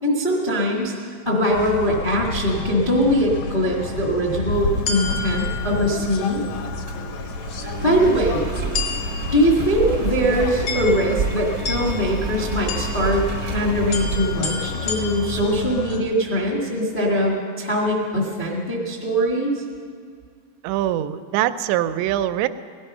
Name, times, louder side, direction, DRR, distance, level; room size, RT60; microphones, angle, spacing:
voice 1, 0.0-0.9 1.2-6.5 7.6-8.5 9.3-19.5, equal, 45° left, -3 dB, 0.6 m, -22 dB
sound 1, 1.5-16.0, left 3 dB, 75° left, 1.6 m, -29 dB
Engine, 4.5-15.4, right 5 dB, 65° right, 1.0 m, -31 dB
voice 2, 20.6-22.5, right 12 dB, 90° right, 11 dB, 2.8 m, -23 dB
18.0 x 12.5 x 5.5 m, 2.1 s
omnidirectional pair, 4.9 m